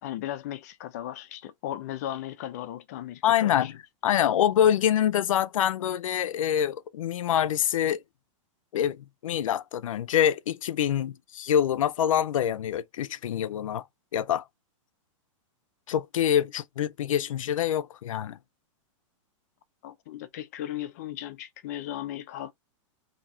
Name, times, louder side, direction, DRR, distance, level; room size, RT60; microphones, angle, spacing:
voice 1, 0.0-3.7 19.8-22.5, left 12 dB, 30° left, 0.4 m, -36 dB
voice 2, 3.2-8.0 8.7-13.8 14.1-14.4 15.9-18.4, left 10 dB, 90° left, 0.5 m, -25 dB
4.3 x 2.8 x 3.7 m
supercardioid pair, 175°, 17 cm